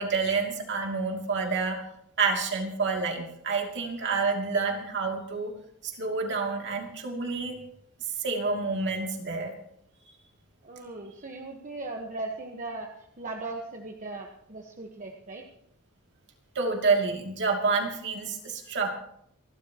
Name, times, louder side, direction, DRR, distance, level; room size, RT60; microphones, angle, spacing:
voice 1, 0.0-1.9 2.2-5.5 5.8-7.6 8.0-9.5 16.5-19.0, right 4 dB, 55° right, 2 dB, 2.8 m, -28 dB
voice 2, 10.6-15.4, right 2 dB, 35° right, 1 dB, 1.4 m, -38 dB
28.5 x 12.5 x 3.0 m, 0.70 s
head